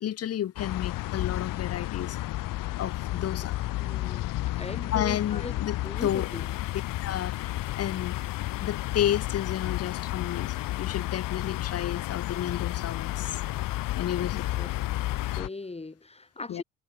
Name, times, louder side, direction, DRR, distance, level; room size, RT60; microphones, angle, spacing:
voice 1, 0.0-2.2 2.8-3.6 4.9-5.8 6.0-6.3 7.0-8.2 8.6-13.4 14.0-14.4 16.5-16.6, left 11 dB, 40° left, 1.3 m, -31 dB
sound 1, 0.6-15.5, left 16 dB, 60° left, 3.7 m, -32 dB
voice 2, 3.8-4.3 4.6-5.5 5.8-6.5 14.5-14.7 15.3-16.6, left 3 dB, 15° left, 5.4 m, -39 dB
water pipe, 6.0-15.4, left 16 dB, 85° left, 2.3 m, -46 dB
hypercardioid pair, 70°, 37 cm